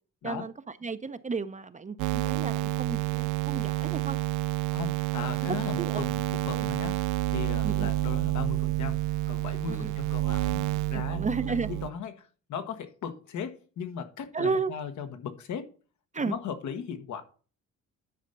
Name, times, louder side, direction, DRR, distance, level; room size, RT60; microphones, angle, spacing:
voice 1, 0.8-4.2 5.8-6.0 6.5-6.7 7.6-7.9 9.7-9.9 10.9-11.7 14.3-14.7 16.1-16.3, right 4 dB, 25° right, 0.6 m, -33 dB
sound 1, 2.0-11.9, right 17 dB, 85° right, 0.5 m, -29 dB
voice 2, 4.7-15.7 16.2-17.2, left 7 dB, 70° left, 1.4 m, -38 dB
10.5 x 4.3 x 5.3 m
cardioid pair, 90°, 30 cm